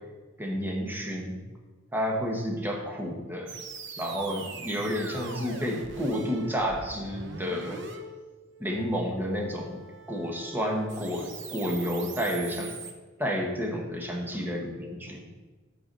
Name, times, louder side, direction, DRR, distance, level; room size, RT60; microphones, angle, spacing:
voice 1, 0.4-1.4 1.9-3.5 4.0-7.8 8.6-9.8 10.1-12.7 13.2-15.2, equal, 10° right, 0 dB, 1.4 m, -30 dB
sound 1, 3.5-12.9, right 4 dB, 65° right, 0.9 m, -43 dB
7.9 x 4.8 x 6.8 m, 1.3 s
head